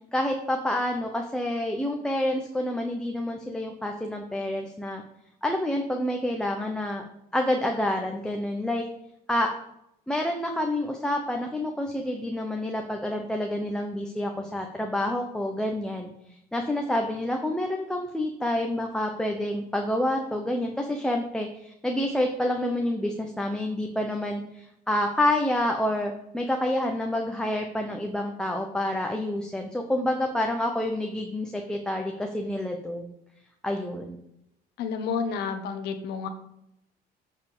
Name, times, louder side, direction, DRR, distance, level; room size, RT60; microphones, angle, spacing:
voice 1, 0.1-5.0 5.4-7.0 7.3-8.8 9.3-9.5 10.1-16.1 16.5-33.1 33.6-34.2, left 1 dB, 5° left, 2 dB, 1.0 m, -28 dB
voice 2, 34.8-36.3, left 6 dB, 75° left, 8 dB, 1.4 m, -30 dB
8.5 x 4.8 x 6.8 m, 0.80 s
cardioid pair, 110°, 17 cm